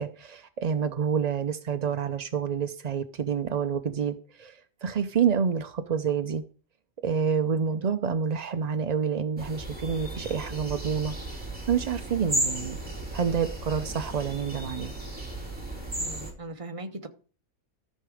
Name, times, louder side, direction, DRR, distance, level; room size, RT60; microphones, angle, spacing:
voice 1, 0.0-6.4 7.0-11.1 11.7-12.8 13.1-14.9, right 6 dB, 60° right, 0.4 m, -28 dB
sound 1, 9.4-16.3, right 1 dB, 5° right, 3.0 m, -34 dB
voice 2, 16.0-17.1, right 2 dB, 25° right, 0.9 m, -40 dB
13.5 x 6.6 x 4.9 m
omnidirectional pair, 1.5 m